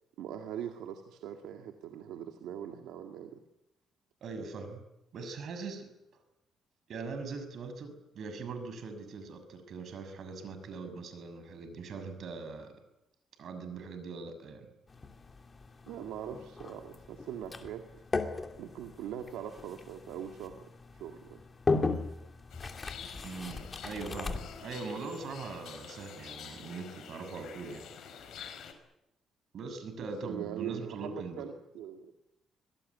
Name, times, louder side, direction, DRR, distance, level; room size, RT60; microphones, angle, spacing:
voice 1, 0.2-3.4 15.9-17.9 18.6-20.6 20.9-21.4 30.0-32.1, right 9 dB, 90° right, 4 dB, 2.0 m, -41 dB
voice 2, 4.2-4.8 5.1-5.9 6.9-12.7 13.4-14.7 23.2-28.1 29.5-31.5, right 4 dB, 65° right, 9 dB, 6.5 m, -41 dB
sound 1, 14.9-24.7, left 3 dB, 30° left, 2.9 m, -37 dB
sound 2, 22.5-28.7, left 7 dB, 75° left, 5.0 m, -48 dB
26.0 x 18.5 x 9.5 m, 0.88 s
cardioid pair, 90°, 0 cm